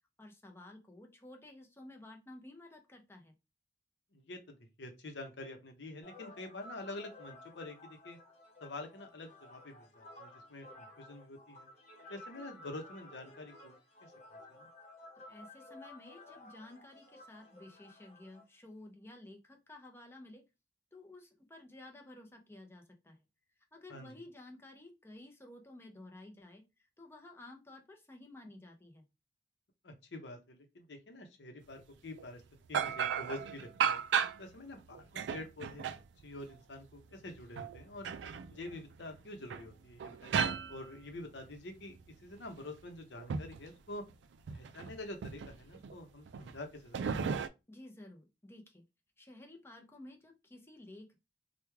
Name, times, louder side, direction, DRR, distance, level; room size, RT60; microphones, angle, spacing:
voice 1, 0.2-3.3 15.3-20.4 20.9-23.2 23.7-29.1 47.7-48.8 49.2-51.2, left 1 dB, 15° left, 2 dB, 0.7 m, -53 dB
voice 2, 4.1-8.2 8.6-11.7 12.1-13.7 14.0-14.1 14.6-14.7 23.9-24.1 29.8-32.4 32.7-34.0 34.4-35.8 36.2-38.1 38.5-44.0 44.5-47.3, left 2 dB, 70° left, 5 dB, 0.8 m, -47 dB
sound 1, 6.0-18.4, left 2 dB, 40° left, 1.1 m, -54 dB
sound 2, 32.1-32.2 32.7-34.5 34.9-36.5 37.2-39.2 39.5-41.6 42.0-43.7 44.0-44.1 44.5-45.0 45.2-46.0 46.3-46.6 46.9-47.5, right 7 dB, 80° right, 0.3 m, -35 dB
3.1 x 2.3 x 3.4 m, 0.25 s
head